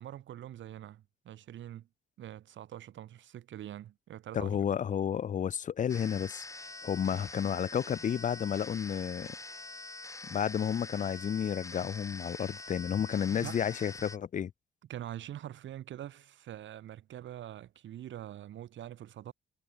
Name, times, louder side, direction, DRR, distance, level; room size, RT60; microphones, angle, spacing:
voice 1, 0.0-1.9 2.2-4.6 13.3-13.6 14.9-19.3, right 12 dB, 70° right, 2.0 m, -44 dB
voice 2, 4.3-6.5 6.8-9.4 10.3-14.5, left 8 dB, 40° left, 0.6 m, -31 dB
sound 1, 5.9-14.2, left 2 dB, 15° left, 1.7 m, -45 dB
cardioid pair, 90°, 20 cm